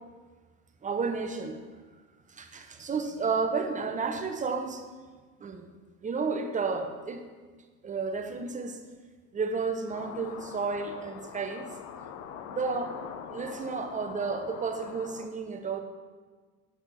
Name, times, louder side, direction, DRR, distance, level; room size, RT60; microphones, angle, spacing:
voice 1, 0.8-1.6 2.3-4.8 5.4-5.7 6.0-7.2 7.8-8.8 9.3-11.7 12.5-13.0 13.3-15.8, right 4 dB, 15° right, 6 dB, 0.8 m, -32 dB
sound 1, 9.9-15.3, left 8 dB, 40° left, 0.7 m, -43 dB
9.8 x 8.1 x 4.3 m, 1.4 s
figure-of-eight pair, 75°, 46 cm